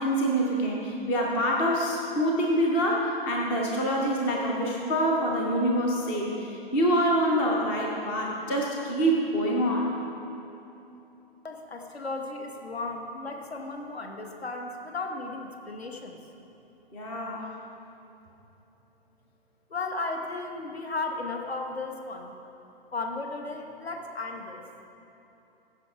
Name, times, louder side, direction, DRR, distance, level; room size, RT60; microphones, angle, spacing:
voice 1, 0.0-9.9 16.9-17.5, equal, 5° left, -1 dB, 0.3 m, -26 dB
voice 2, 11.4-16.2 19.7-22.4 22.9-24.6, left 3 dB, 80° left, 3 dB, 1.1 m, -35 dB
14.5 x 5.8 x 4.7 m, 2.9 s
figure-of-eight pair, 120°, 31 cm